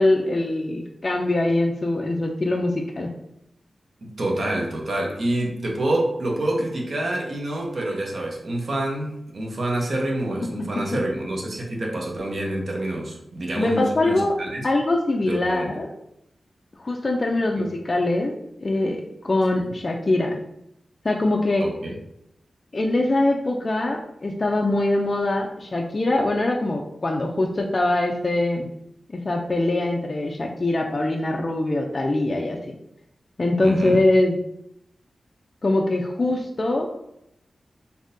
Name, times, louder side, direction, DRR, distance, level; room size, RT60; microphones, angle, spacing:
voice 1, 0.0-3.1 13.6-14.3 14.6-15.9 16.8-18.3 18.6-19.0 19.2-20.4 21.0-21.7 22.7-28.7 29.1-32.6 33.4-34.4 35.6-36.9, left 2 dB, 35° left, 0 dB, 0.3 m, -23 dB
voice 2, 4.0-14.7 15.3-15.7 17.5-17.6 19.6-19.7 21.6-21.9 33.6-34.0, right 1 dB, 55° right, -1 dB, 0.7 m, -27 dB
3.5 x 2.7 x 2.6 m, 0.79 s
wide cardioid pair, 120°, 0 cm